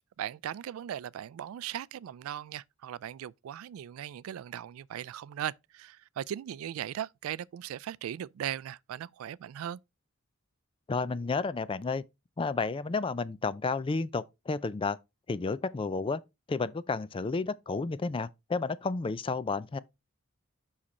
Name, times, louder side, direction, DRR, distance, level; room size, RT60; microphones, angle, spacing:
voice 1, 0.0-9.8, right 10 dB, 80° right, 0.3 m, -38 dB
voice 2, 10.9-12.0 12.4-15.0 15.3-16.2 16.5-19.8, left 4 dB, 25° left, 0.3 m, -31 dB
5.8 x 5.0 x 4.1 m
head